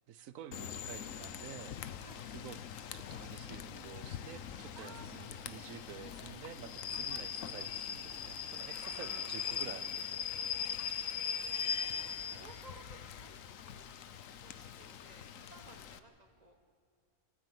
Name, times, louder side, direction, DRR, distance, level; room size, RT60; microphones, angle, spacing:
voice 1, 0.1-1.8 2.3-2.6 2.9-10.3 12.3-12.5, right 10 dB, 85° right, 13 dB, 1.1 m, -50 dB
Rain / Train, 0.5-16.0, left 8 dB, 75° left, 1.1 m, -41 dB
voice 2, 4.8-5.4 6.9-7.3 8.8-9.4 10.8-10.9 11.5-13.4 13.7-13.9 14.3-16.5, right 2 dB, 30° right, 4 dB, 1.7 m, -56 dB
28.5 x 9.9 x 9.2 m, 2.1 s
omnidirectional pair, 1.4 m